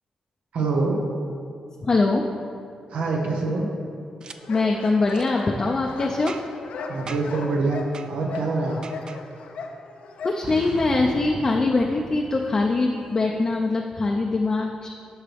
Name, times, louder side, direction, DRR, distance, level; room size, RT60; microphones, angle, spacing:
voice 1, 0.5-1.0 2.9-3.6 6.9-7.8 8.1-8.8, right 3 dB, 85° right, 0 dB, 1.1 m, -25 dB
voice 2, 1.8-2.2 4.5-6.4 10.2-14.9, left 3 dB, 30° left, 1 dB, 0.5 m, -22 dB
Boom, 4.2-4.4 5.1-5.3 6.3-6.7 7.1-7.4 7.9-8.1 8.8-9.2 10.4-13.1, right 4 dB, 40° right, 0.4 m, -38 dB
sound 1, 4.3-10.8, left 4 dB, 80° left, 0.7 m, -37 dB
10.5 x 6.4 x 3.5 m, 2.4 s
wide cardioid pair, 145°, 2 cm